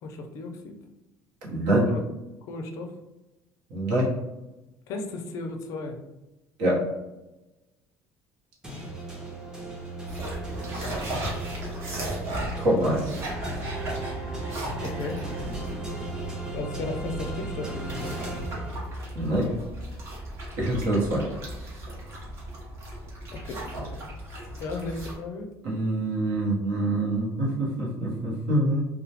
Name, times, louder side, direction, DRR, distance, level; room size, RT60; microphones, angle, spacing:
voice 1, 0.0-0.8 1.9-2.0 2.5-2.9 4.9-6.0 10.8-11.3 14.8-15.2 16.5-18.3 23.3-24.1 24.6-25.5, left 3 dB, 55° left, 3 dB, 0.4 m, -35 dB
voice 2, 1.5-1.9 3.7-4.1 6.6-6.8 12.6-13.2 19.2-19.5 20.6-21.3 25.6-28.8, right 1 dB, 85° right, -4 dB, 0.9 m, -25 dB
sound 1, 8.6-19.2, right 2 dB, 10° right, 0.5 m, -36 dB
sound 2, 10.1-25.1, right 1 dB, 40° right, 0.7 m, -36 dB
2.2 x 2.1 x 2.7 m, 1.0 s
cardioid pair, 155°, 7 cm